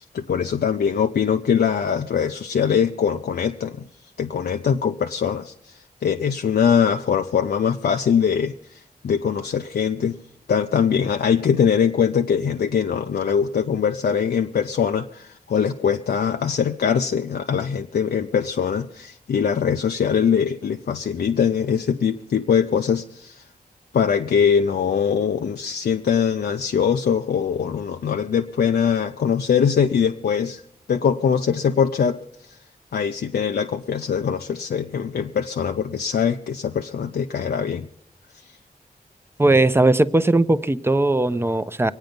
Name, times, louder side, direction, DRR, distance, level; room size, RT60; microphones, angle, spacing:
voice 1, 0.0-3.8 4.2-10.2 10.5-23.4 23.9-30.6 30.9-32.6 32.9-37.9, left 7 dB, 90° left, 5 dB, 0.6 m, -22 dB
voice 2, 39.4-41.9, right 2 dB, 15° right, 12 dB, 0.6 m, -18 dB
24.0 x 9.1 x 5.3 m, 0.67 s
wide cardioid pair, 95°, 16 cm